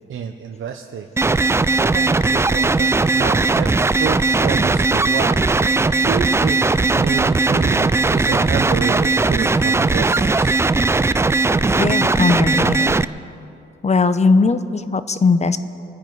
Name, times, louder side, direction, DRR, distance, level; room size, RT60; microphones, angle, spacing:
voice 1, 0.1-1.1 1.7-2.9 3.1-10.6, right 7 dB, 70° right, 4 dB, 0.8 m, -29 dB
sound 1, 1.2-13.0, right 3 dB, 15° right, 0.3 m, -18 dB
voice 2, 11.8-13.0 13.8-15.6, left 4 dB, 30° left, 12 dB, 0.7 m, -18 dB
25.0 x 10.0 x 4.7 m, 2.6 s
cardioid pair, 95°, 21 cm